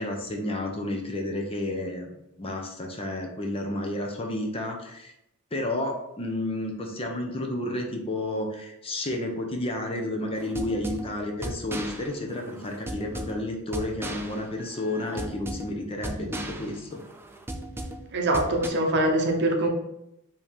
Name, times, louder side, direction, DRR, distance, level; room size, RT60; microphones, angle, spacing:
voice 1, 0.0-2.1 2.4-5.1 5.5-17.0, left 1 dB, 25° left, 2 dB, 0.6 m, -31 dB
sound 1, 10.4-18.7, right 1 dB, 10° right, 0.3 m, -37 dB
voice 2, 18.1-19.7, right 1 dB, 50° right, 2 dB, 0.7 m, -23 dB
5.2 x 2.8 x 3.3 m, 0.84 s
head